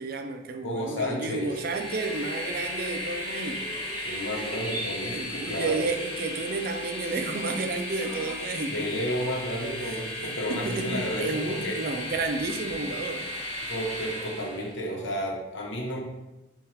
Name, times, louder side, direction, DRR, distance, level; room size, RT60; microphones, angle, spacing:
voice 1, 0.0-3.6 5.1-8.9 9.8-10.0 10.5-13.3, right 3 dB, 50° right, 5 dB, 0.4 m, -31 dB
voice 2, 0.6-1.6 4.0-5.8 8.7-11.8 13.6-16.0, equal, 80° left, -1 dB, 1.0 m, -32 dB
Train, 1.3-14.8, left 1 dB, 35° left, 1.0 m, -36 dB
sound 1, 3.3-8.4, right 1 dB, 10° right, 0.7 m, -43 dB
5.7 x 2.4 x 3.3 m, 1.0 s
head